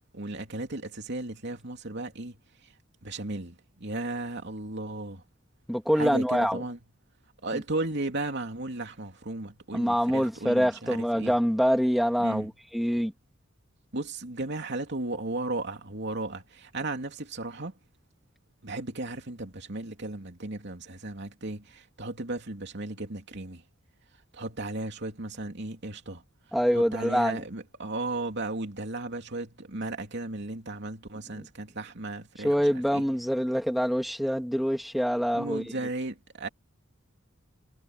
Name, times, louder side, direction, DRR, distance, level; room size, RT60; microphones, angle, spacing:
voice 1, 0.1-2.4 3.0-5.2 6.0-6.8 7.4-11.3 12.2-12.5 13.9-17.7 18.6-23.6 24.3-26.2 26.7-32.5 32.9-33.0 35.3-36.5, right 2 dB, 60° right, 3.0 m, -35 dB
voice 2, 5.7-6.6 7.5-7.6 9.7-13.1 26.5-27.4 31.4-31.5 32.4-35.6, equal, ahead, 2.8 m, -25 dB
head